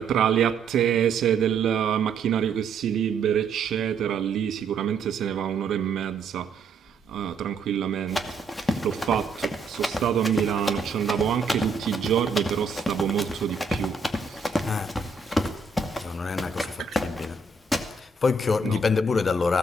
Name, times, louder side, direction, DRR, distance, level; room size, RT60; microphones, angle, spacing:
voice 1, 0.0-6.7 7.1-14.0 14.3-14.6 16.6-17.0 18.6-18.8, right 9 dB, 80° right, 1.5 m, -26 dB
Run, 8.1-16.1 16.4-16.7 17.0-17.3 17.7-17.9, left 1 dB, 15° left, 2.2 m, -30 dB
voice 2, 14.6-15.3 16.0-17.5 18.0-19.6, left 4 dB, 35° left, 0.8 m, -26 dB
20.5 x 16.5 x 8.5 m
cardioid pair, 120°, 0 cm